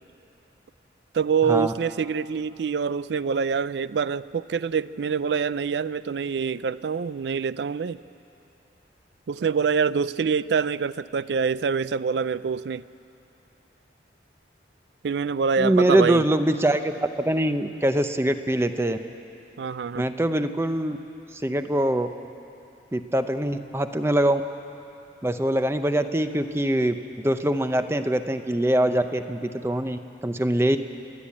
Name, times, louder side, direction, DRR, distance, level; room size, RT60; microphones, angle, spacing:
voice 1, 1.1-8.0 9.3-12.8 15.0-16.2 19.6-20.0, right 6 dB, 70° right, 17 dB, 0.4 m, -25 dB
voice 2, 15.6-19.0 19.9-21.0 21.3-22.1 22.9-24.4 25.2-30.8, right 1 dB, 15° right, 9 dB, 0.6 m, -23 dB
30.0 x 10.0 x 8.5 m, 2.9 s
head